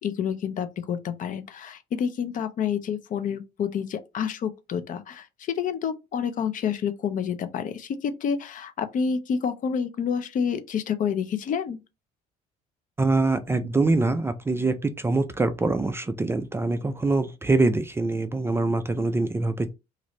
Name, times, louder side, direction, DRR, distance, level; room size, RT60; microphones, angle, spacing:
voice 1, 0.0-11.8, left 7 dB, 50° left, 0.5 m, -28 dB
voice 2, 13.0-19.7, right 3 dB, 15° right, 0.3 m, -24 dB
3.1 x 2.5 x 2.9 m
cardioid pair, 110°, 17 cm